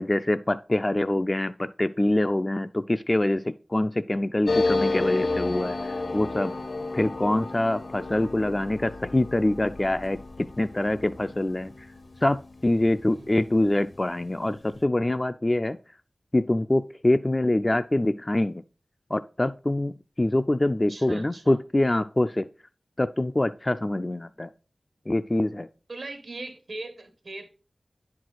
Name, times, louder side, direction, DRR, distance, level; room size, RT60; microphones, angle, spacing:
voice 1, 0.0-6.5 6.9-11.9 12.2-15.8 16.3-18.6 19.1-22.5 23.0-24.5 25.1-25.7, left 1 dB, 30° left, 0.3 m, -25 dB
sound 1, 4.5-13.6 13.9-14.0 14.2-14.8, left 3 dB, 75° left, 1.0 m, -31 dB
voice 2, 8.1-8.6 13.1-13.5 20.9-21.6 25.9-27.5, right 2 dB, 75° right, 1.3 m, -40 dB
10.0 x 4.8 x 4.0 m
cardioid pair, 45°, 0 cm